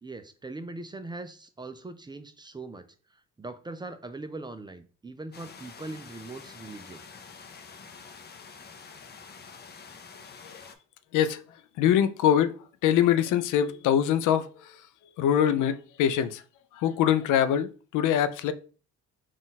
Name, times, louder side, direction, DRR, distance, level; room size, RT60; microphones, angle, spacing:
voice 1, 0.0-2.9 3.1-7.0, right 2 dB, 15° right, 0.4 m, -41 dB
sound 1, 5.3-10.7, left 5 dB, 35° left, 0.6 m, -47 dB
voice 2, 11.8-12.5 12.8-14.8 15.2-16.4 16.7-18.5, left 10 dB, 85° left, 0.5 m, -24 dB
3.9 x 2.4 x 3.9 m
cardioid pair, 90°, 30 cm